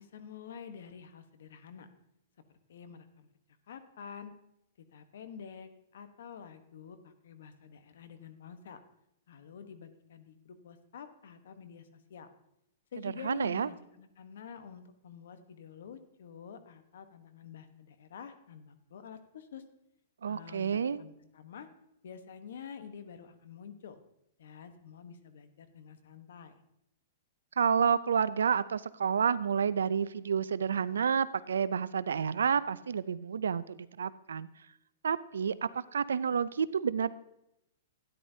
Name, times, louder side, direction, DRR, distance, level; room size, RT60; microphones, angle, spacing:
voice 1, 0.0-1.9 2.7-3.3 3.7-4.3 4.9-8.8 9.3-12.3 12.9-19.6 20.3-21.7 22.0-24.0 24.4-26.6, left 7 dB, 75° left, 10 dB, 1.1 m, -48 dB
voice 2, 13.0-13.7 20.2-21.0 27.6-34.5 35.0-37.1, right 7 dB, 90° right, 17 dB, 0.4 m, -30 dB
12.5 x 10.0 x 2.7 m, 0.81 s
hypercardioid pair, 135°, 0 cm